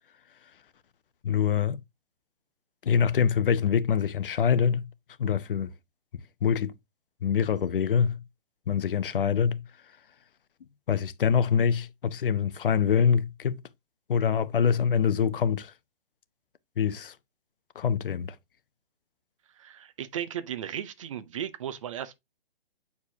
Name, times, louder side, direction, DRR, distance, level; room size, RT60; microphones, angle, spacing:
voice 1, 1.2-1.8 2.8-4.9 5.2-5.7 6.4-6.7 7.2-8.2 8.7-9.6 10.9-13.6 14.1-15.7 16.8-17.1 17.8-18.3, left 7 dB, 60° left, 0.8 m, -25 dB
voice 2, 19.6-22.2, right 10 dB, 35° right, 0.7 m, -35 dB
8.2 x 4.6 x 2.8 m
hypercardioid pair, 160°, 30 cm